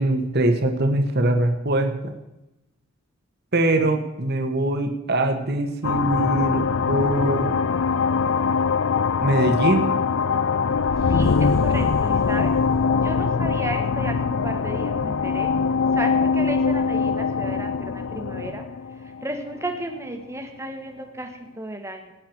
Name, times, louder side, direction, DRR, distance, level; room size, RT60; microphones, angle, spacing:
voice 1, 0.0-2.1 3.5-7.6 9.2-9.9, right 1 dB, 50° right, 5 dB, 1.6 m, -22 dB
sound 1, 5.8-20.0, left 5 dB, 65° left, 0.5 m, -22 dB
voice 2, 11.1-12.5 13.0-15.5 15.9-18.6 19.0-22.1, right 1 dB, 15° right, 4 dB, 1.6 m, -33 dB
18.5 x 9.7 x 4.6 m, 0.96 s
head